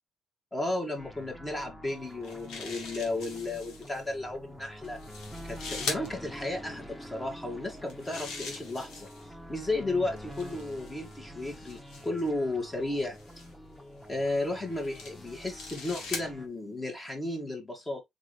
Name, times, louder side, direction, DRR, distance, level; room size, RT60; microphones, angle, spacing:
voice 1, 0.5-5.0 5.4-9.1 9.5-13.2 14.1-18.0, left 2 dB, 25° left, 2.2 m, -33 dB
sound 1, 1.0-16.5, equal, 5° left, 1.3 m, -46 dB
sound 2, 2.0-4.0 4.8-6.1 7.7-9.3 10.2-12.3 13.1-13.5 14.3-16.3, left 4 dB, 85° left, 1.8 m, -41 dB
4.1 x 3.8 x 3.2 m
cardioid pair, 90°, 0 cm